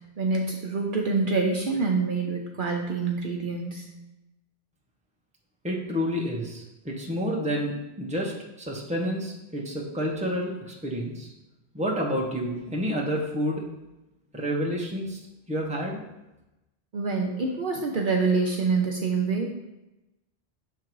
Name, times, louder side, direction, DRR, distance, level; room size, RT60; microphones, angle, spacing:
voice 1, 0.2-3.8 16.9-19.5, right 4 dB, 55° right, 0 dB, 0.8 m, -26 dB
voice 2, 5.6-8.3 8.6-11.3 11.7-13.7 14.3-15.2 15.5-16.0, equal, 5° right, -2 dB, 0.9 m, -29 dB
6.7 x 3.7 x 4.6 m, 0.97 s
omnidirectional pair, 1.1 m